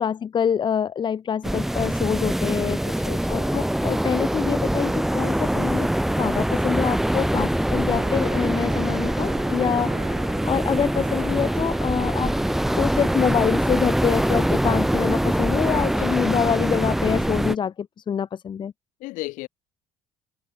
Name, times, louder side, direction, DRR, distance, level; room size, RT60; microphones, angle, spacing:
voice 1, 0.0-2.8 3.3-5.9 6.2-12.3 12.7-18.7, left 8 dB, 35° left, 0.7 m, -26 dB
sound 1, 1.4-17.6, right 1 dB, ahead, 0.3 m, -23 dB
voice 2, 2.8-3.5 15.9-16.2 19.0-19.5, left 20 dB, 80° left, 1.1 m, -35 dB
sound 2, 7.9-14.3, right 25 dB, 90° right, 4.2 m, -41 dB
cardioid pair, 95°, 13 cm